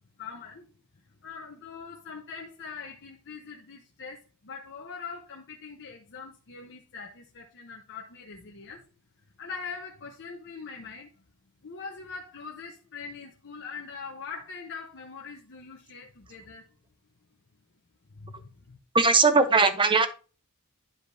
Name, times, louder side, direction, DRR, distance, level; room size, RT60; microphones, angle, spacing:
voice 1, 0.2-0.7 1.2-8.8 9.4-11.2 11.6-16.7 18.1-18.8, left 5 dB, 55° left, 0.9 m, -42 dB
voice 2, 18.9-20.1, right 4 dB, 20° right, 0.8 m, -20 dB
11.0 x 5.0 x 2.7 m
head